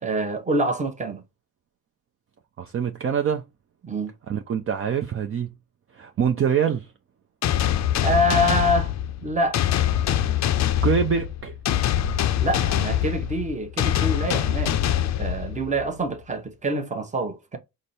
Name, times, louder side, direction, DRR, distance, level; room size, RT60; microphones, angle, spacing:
voice 1, 0.0-1.2 3.8-4.1 8.0-8.9 9.2-9.8 12.4-14.8 15.2-17.6, equal, 20° right, 0.9 m, -26 dB
voice 2, 2.6-3.4 4.3-5.5 5.9-6.9 10.8-11.5, right 7 dB, 40° right, 0.5 m, -24 dB
sound 1, 7.4-15.9, left 11 dB, 55° left, 0.5 m, -24 dB
5.0 x 2.1 x 4.2 m
cardioid pair, 105°, 33 cm